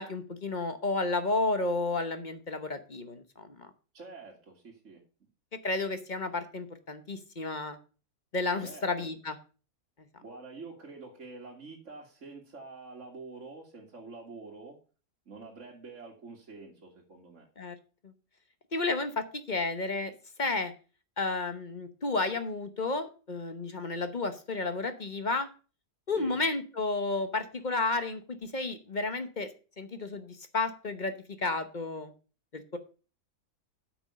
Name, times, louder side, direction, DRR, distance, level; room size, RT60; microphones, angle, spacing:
voice 1, 0.0-3.7 5.6-7.8 8.3-9.4 17.6-17.7 18.7-20.1 20.4-20.7 21.2-25.5 26.1-29.5 29.8-32.1 32.5-32.8, left 3 dB, 35° left, 9 dB, 1.0 m, -32 dB
voice 2, 3.9-5.0 8.6-9.2 10.2-14.8 15.3-17.5 26.2-26.4, right 3 dB, 50° right, -2 dB, 2.2 m, -47 dB
8.9 x 6.2 x 6.5 m, 0.35 s
omnidirectional pair, 1.6 m